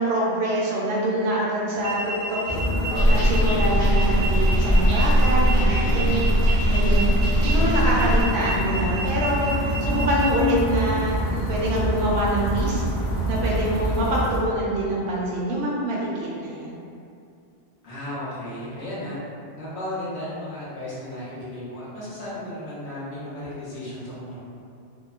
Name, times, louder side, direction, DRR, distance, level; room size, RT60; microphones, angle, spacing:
voice 1, 0.0-2.6 3.1-6.2 6.7-7.1 7.4-11.2 11.5-12.9 13.3-16.8, right 1 dB, 65° right, -5 dB, 0.8 m, -25 dB
sound 1, 1.8-10.3, right 3 dB, 35° right, 0.7 m, -32 dB
sound 2, 2.5-14.4, equal, 85° left, 1.0 m, -26 dB
sound 3, 2.9-8.2, equal, 40° left, 0.4 m, -21 dB
voice 2, 17.8-19.2 19.5-24.5, left 1 dB, 65° left, -10 dB, 1.0 m, -34 dB
2.9 x 2.1 x 2.3 m, 2.4 s
omnidirectional pair, 1.2 m